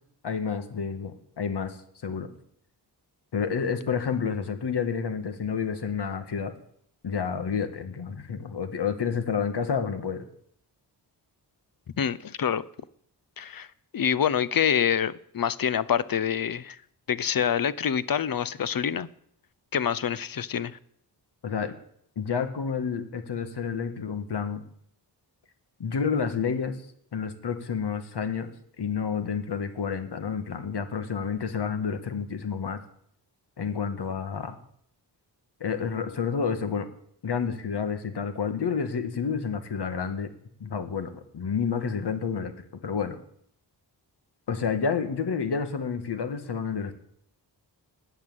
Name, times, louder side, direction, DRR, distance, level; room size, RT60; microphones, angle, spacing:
voice 1, 0.2-1.8 2.0-2.3 3.3-6.5 7.0-10.3 21.4-21.7 22.2-24.6 25.8-26.8 27.1-28.5 28.8-32.8 33.6-34.6 35.6-36.9 37.2-40.3 40.6-42.5 42.8-43.2 44.5-46.9, left 6 dB, 70° left, 1.9 m, -29 dB
voice 2, 12.0-12.6 13.4-13.7 13.9-16.8 17.1-19.1 19.7-20.8, left 8 dB, 55° left, 0.8 m, -26 dB
20.0 x 8.1 x 8.1 m
wide cardioid pair, 130°, 42 cm